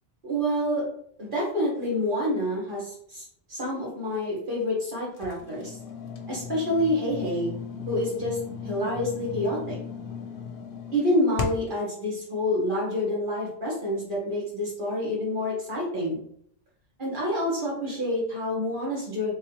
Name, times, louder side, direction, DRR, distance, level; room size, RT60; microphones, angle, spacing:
voice 1, 0.2-0.8 1.2-5.8 6.3-7.5 7.9-9.8 10.9-16.2 17.0-19.3, left 1 dB, 50° right, -5 dB, 1.7 m, -28 dB
sound 1, 5.2-11.8, left 5 dB, 60° left, 0.8 m, -37 dB
3.4 x 3.1 x 3.0 m, 0.66 s
omnidirectional pair, 1.1 m